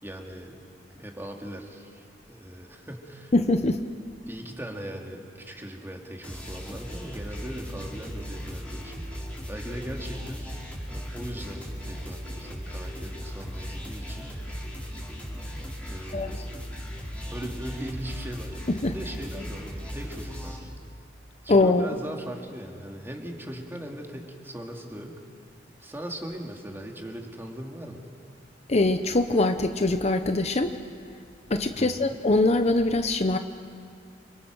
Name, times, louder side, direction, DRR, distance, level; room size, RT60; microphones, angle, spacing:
voice 1, 0.0-0.7 0.9-3.3 4.3-9.1 9.5-10.6 10.9-14.4 15.9-16.5 17.3-18.6 18.9-20.7 21.4-25.1 25.6-28.0 31.8-32.1, equal, 15° right, 1 dB, 2.6 m, -39 dB
voice 2, 3.3-3.8 16.1-16.4 18.8-19.0 21.5-21.9 28.7-30.7 31.5-33.4, left 2 dB, 35° left, 8 dB, 0.8 m, -22 dB
sound 1, 6.2-20.6, equal, 10° left, 4.8 m, -37 dB
29.0 x 26.0 x 6.3 m, 2.2 s
head